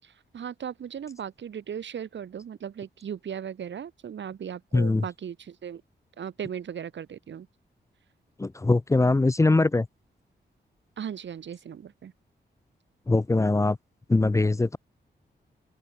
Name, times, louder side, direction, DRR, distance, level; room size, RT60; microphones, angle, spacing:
voice 1, 0.0-5.8 6.2-7.5 11.0-12.1, right 8 dB, 90° right, 5.9 m, -37 dB
voice 2, 4.7-5.0 8.4-9.9 13.1-13.8 14.1-14.8, left 2 dB, 15° left, 0.8 m, -22 dB
open air
wide cardioid pair, 170°, 18 cm